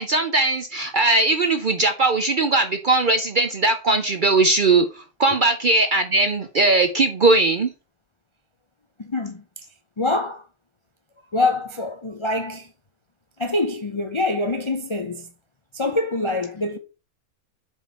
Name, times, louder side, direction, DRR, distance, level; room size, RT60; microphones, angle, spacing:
voice 1, 0.0-7.7, right 3 dB, 55° right, 0.6 m, -19 dB
voice 2, 9.0-9.4 10.0-10.4 11.3-12.7 13.4-15.3 15.7-16.8, left 2 dB, 40° left, 0.4 m, -25 dB
6.9 x 4.6 x 4.2 m
omnidirectional pair, 1.5 m